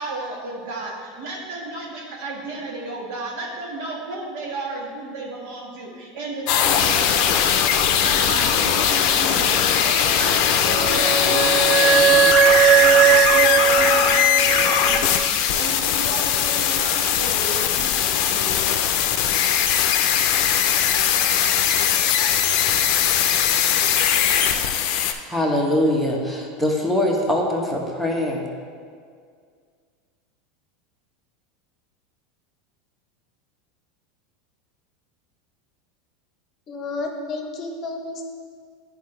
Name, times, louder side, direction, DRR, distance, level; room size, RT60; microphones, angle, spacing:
voice 1, 0.0-18.8, right 2 dB, 65° right, -1 dB, 1.5 m, -33 dB
sound 1, 6.5-25.1, left 9 dB, 60° left, 0.5 m, -20 dB
Wind instrument woodwind instrument, 10.6-15.3, right 8 dB, 35° right, 0.4 m, -18 dB
voice 2, 25.3-28.5, left 1 dB, ahead, -1 dB, 1.0 m, -22 dB
voice 3, 36.7-38.3, left 3 dB, 35° left, 3 dB, 0.9 m, -31 dB
10.0 x 4.7 x 3.3 m, 2.1 s
supercardioid pair, 130°, 0 cm